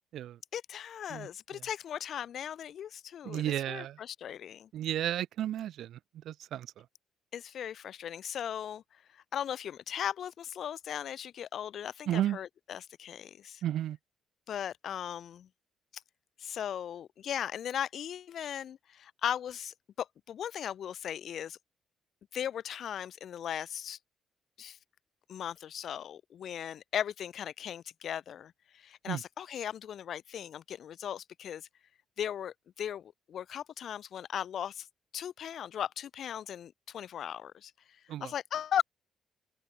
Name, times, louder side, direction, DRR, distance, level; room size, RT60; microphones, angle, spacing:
voice 1, 0.5-4.7 7.3-8.8 9.3-13.6 14.5-15.5 16.4-21.6 22.3-24.0 24.6-24.8 25.3-31.7 32.2-34.9 35.1-37.7 38.2-38.8, left 9 dB, 65° left, 7.8 m, -37 dB
voice 2, 3.2-4.0 4.7-6.7 12.1-12.4 13.6-14.0 29.1-29.2 38.1-38.3, right 12 dB, 75° right, 4.8 m, -33 dB
open air
cardioid pair, 90°, 0 cm